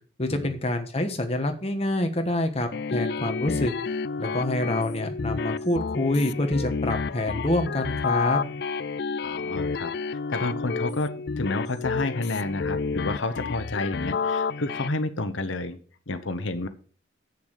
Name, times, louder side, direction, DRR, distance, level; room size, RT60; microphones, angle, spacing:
voice 1, 0.2-3.7 4.2-8.4, left 1 dB, 30° left, 5 dB, 1.4 m, -26 dB
sound 1, 2.7-14.9, left 5 dB, 55° left, 0.4 m, -30 dB
voice 2, 9.2-15.8 16.1-16.7, left 2 dB, 85° left, 9 dB, 1.0 m, -30 dB
8.1 x 7.0 x 6.5 m, 0.41 s
head